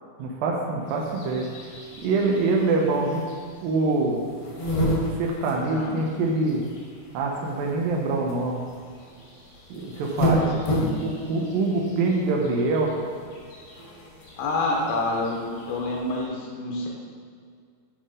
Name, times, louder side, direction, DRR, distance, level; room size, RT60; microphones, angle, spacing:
voice 1, 0.2-1.5 2.0-3.2 3.6-4.2 5.2-6.6 7.1-8.6 9.7-10.5 11.0-12.9, right 3 dB, 80° right, 0 dB, 2.5 m, -24 dB
sound 1, 0.9-16.2, equal, 55° left, 1.6 m, -33 dB
voice 2, 14.4-16.9, left 2 dB, 80° left, -1 dB, 2.5 m, -28 dB
8.8 x 3.6 x 5.0 m, 2.1 s
omnidirectional pair, 4.1 m